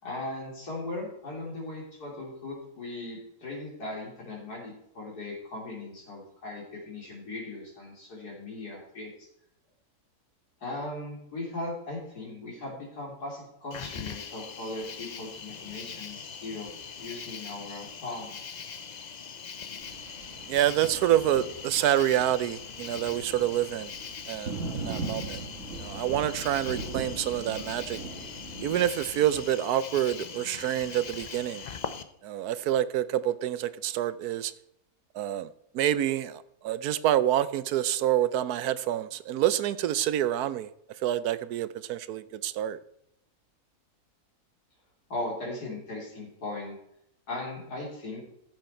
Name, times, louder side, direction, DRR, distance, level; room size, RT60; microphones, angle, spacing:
voice 1, 0.0-9.3 10.6-16.7 17.0-18.4 45.1-46.8 47.3-48.2, left 2 dB, 80° left, 3.9 m, -38 dB
Cricket, 13.7-32.0, left 6 dB, 50° left, 0.5 m, -41 dB
Thunder, 19.8-29.4, right 3 dB, 55° right, 1.7 m, -40 dB
voice 2, 20.5-23.9 24.3-25.4 25.8-28.0 28.6-31.6 32.2-34.5 35.1-40.7 41.0-42.8, right 12 dB, 80° right, 1.1 m, -27 dB
14.5 x 7.8 x 4.4 m
omnidirectional pair, 1.6 m